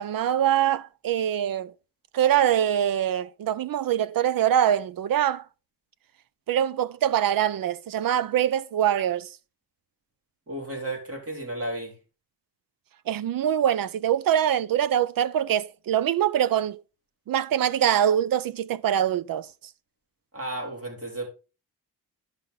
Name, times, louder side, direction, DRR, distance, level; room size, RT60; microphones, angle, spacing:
voice 1, 0.0-1.7 2.1-5.4 6.5-9.3 13.1-16.8 17.3-19.5, right 10 dB, 60° right, 0.6 m, -24 dB
voice 2, 10.5-12.0 20.3-21.3, right 1 dB, 35° right, 4.2 m, -33 dB
10.5 x 5.7 x 3.9 m
cardioid pair, 115°, 39 cm